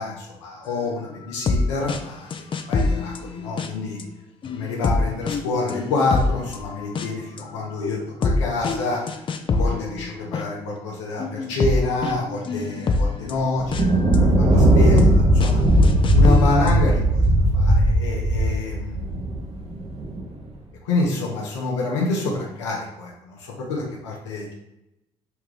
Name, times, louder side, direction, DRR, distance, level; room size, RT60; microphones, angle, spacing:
voice 1, 0.0-2.3 2.7-4.0 4.5-9.0 9.5-15.6 16.1-17.2 17.5-19.1 20.8-24.5, left 3 dB, 90° left, -2 dB, 0.6 m, -27 dB
sound 1, 1.2-1.6 1.9-2.0 2.3-4.0 4.4-7.1 7.4-10.4 11.2-14.2 14.7-15.1 15.4-15.5 15.8-16.8, left 3 dB, 35° left, 0.4 m, -25 dB
Thunder, 13.6-20.2, right 1 dB, 45° right, 0.8 m, -18 dB
3.4 x 2.3 x 3.1 m, 0.88 s
hypercardioid pair, 55°, 15 cm